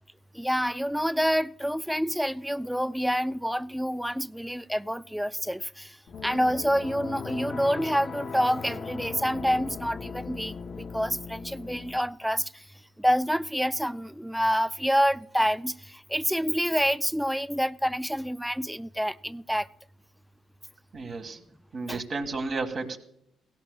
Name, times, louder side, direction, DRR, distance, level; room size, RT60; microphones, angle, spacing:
voice 1, 0.3-6.0 6.2-12.5 13.0-19.7 21.9-22.0, equal, ahead, 0.4 m, -27 dB
sound 1, 6.1-12.0, left 5 dB, 55° left, 0.7 m, -38 dB
voice 2, 20.9-21.4 21.7-23.0, right 3 dB, 50° right, 1.8 m, -32 dB
17.0 x 17.0 x 2.3 m
cardioid pair, 90°, 0 cm